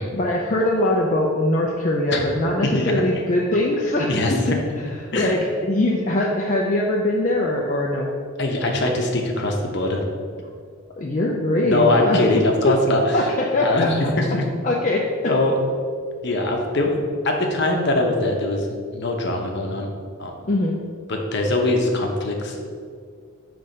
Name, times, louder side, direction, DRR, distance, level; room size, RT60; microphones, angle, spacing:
voice 1, 0.1-4.5 5.1-8.1 11.0-12.3 12.6-12.7 13.1-14.1 14.6-15.3 20.5-20.8, left 1 dB, 35° left, -3 dB, 0.5 m, -22 dB
voice 2, 2.7-3.2 4.1-4.7 5.1-5.4 8.4-10.0 11.6-13.3 13.6-14.4 15.3-15.5 16.2-16.9 17.2-19.9 20.2-20.4 21.1-22.6, left 2 dB, 55° left, 1 dB, 0.9 m, -22 dB
6.7 x 3.4 x 5.4 m, 2.1 s
head